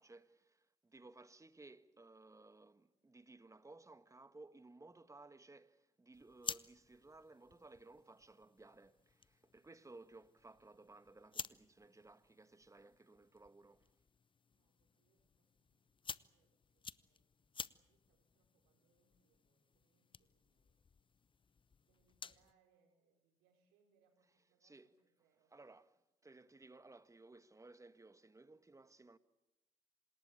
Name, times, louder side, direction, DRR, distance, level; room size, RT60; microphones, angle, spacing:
voice 1, 0.0-13.9 24.6-24.9 25.5-29.2, right 2 dB, 20° right, 1.6 m, -59 dB
sound 1, 6.1-22.5, left 5 dB, 30° left, 0.9 m, -53 dB
voice 2, 14.5-21.0 21.9-25.5, right 5 dB, 75° right, 5.5 m, -80 dB
26.5 x 19.5 x 9.1 m
hypercardioid pair, 55°, 17 cm